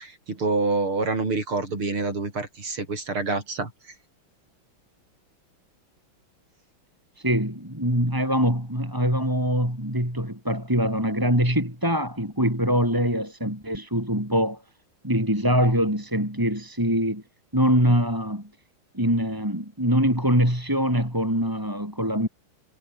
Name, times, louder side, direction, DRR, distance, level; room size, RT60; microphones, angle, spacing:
voice 1, 0.0-3.7, right 3 dB, 90° right, 6.5 m, -27 dB
voice 2, 7.2-14.6 15.0-17.2 17.5-18.5 18.9-22.3, equal, 10° right, 7.1 m, -23 dB
omnidirectional pair, 2.3 m